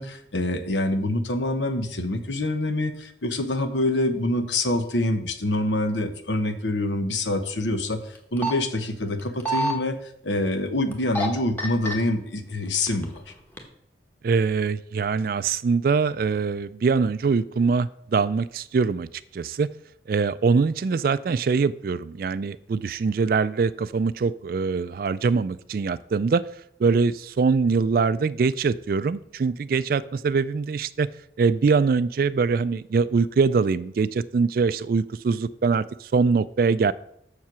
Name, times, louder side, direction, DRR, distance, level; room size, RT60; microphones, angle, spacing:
voice 1, 0.0-13.3, left 1 dB, 85° left, 8 dB, 1.1 m, -26 dB
sound 1, 8.1-8.5 9.2-9.7 10.9-11.3 11.6-11.9 12.7-13.2 13.6-13.7, right 2 dB, 10° left, 1.3 m, -26 dB
voice 2, 14.2-19.1 19.3-19.7 20.1-26.4 26.8-31.1 31.4-36.9, right 4 dB, 50° right, 16 dB, 0.3 m, -23 dB
7.3 x 6.7 x 6.1 m, 0.71 s
head